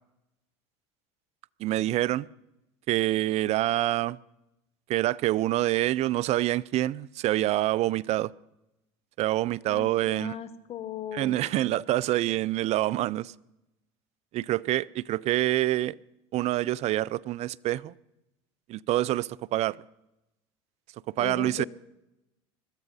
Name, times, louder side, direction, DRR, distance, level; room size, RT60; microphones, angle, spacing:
voice 1, 1.6-2.3 2.9-4.2 4.9-8.3 9.2-10.4 11.1-13.3 14.3-16.0 16.3-17.9 18.7-19.8 21.2-21.6, right 15 dB, 50° right, 0.4 m, -26 dB
voice 2, 9.7-11.4 21.2-21.7, left 10 dB, 45° left, 1.3 m, -38 dB
22.0 x 13.5 x 4.1 m
hypercardioid pair, 85°, 14 cm